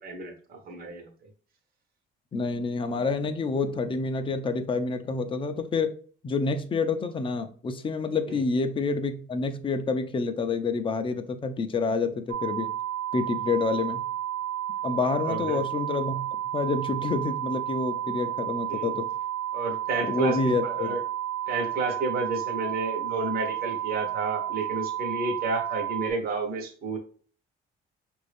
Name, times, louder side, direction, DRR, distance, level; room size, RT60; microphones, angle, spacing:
voice 1, 0.0-1.1 8.3-8.4 15.3-15.6 18.7-18.9 19.5-21.0 21.5-27.0, right 3 dB, 45° right, 2 dB, 1.0 m, -31 dB
voice 2, 2.3-5.9 6.2-12.7 13.1-14.0 14.8-16.2 16.5-19.1 20.0-20.9, left 4 dB, 25° left, 8 dB, 0.5 m, -28 dB
sound 1, 12.3-26.1, right 11 dB, 85° right, 0.7 m, -32 dB
5.5 x 2.6 x 3.4 m, 0.43 s
cardioid pair, 135°, 21 cm